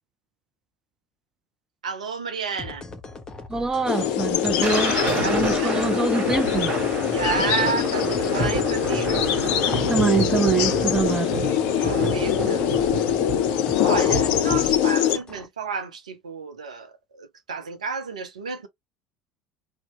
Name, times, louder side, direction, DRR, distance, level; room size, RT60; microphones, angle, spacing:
voice 1, 1.8-2.9 5.2-5.8 7.1-9.2 11.0-12.7 13.8-18.7, right 5 dB, 75° right, 0.5 m, -31 dB
sound 1, 2.6-15.5, left 3 dB, 20° left, 0.7 m, -40 dB
voice 2, 3.5-4.9 5.3-6.7 9.9-11.3, right 4 dB, 15° right, 0.5 m, -24 dB
sound 2, 3.9-15.2, left 11 dB, 55° left, 0.4 m, -23 dB
Thunder, 4.2-15.0, right 4 dB, 45° right, 1.1 m, -29 dB
2.7 x 2.0 x 2.9 m
figure-of-eight pair, 65°, 4 cm